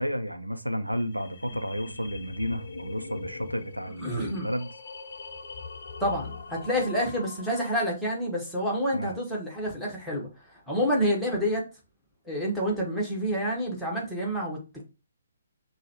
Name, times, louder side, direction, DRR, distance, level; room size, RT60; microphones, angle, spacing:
voice 1, 0.0-4.7 8.9-9.1, equal, 85° right, 0.5 m, -32 dB
sound 1, 0.9-7.9, left 4 dB, 50° left, 0.7 m, -42 dB
voice 2, 4.0-4.5 6.0-10.3 10.7-11.6 12.2-14.6, equal, ahead, 1.2 m, -28 dB
6.3 x 2.3 x 2.9 m
figure-of-eight pair, 135°, 0 cm